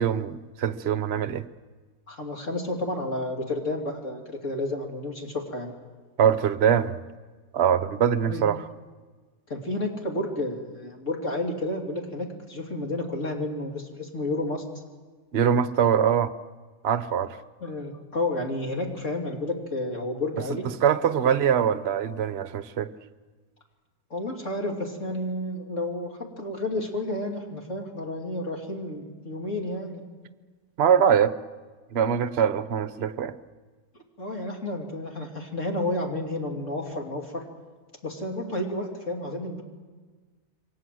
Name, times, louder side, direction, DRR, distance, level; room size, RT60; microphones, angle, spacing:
voice 1, 0.0-1.4 6.2-7.0 7.5-8.7 15.3-16.3 16.8-17.4 20.8-22.9 30.8-31.3 31.9-33.4, right 8 dB, 45° right, 1.1 m, -23 dB
voice 2, 2.1-5.7 8.3-8.4 9.5-14.6 17.6-20.6 21.2-21.3 24.1-30.0 34.2-37.4 38.0-39.6, left 1 dB, 50° left, 3.4 m, -31 dB
28.0 x 24.0 x 7.8 m
omnidirectional pair, 1.7 m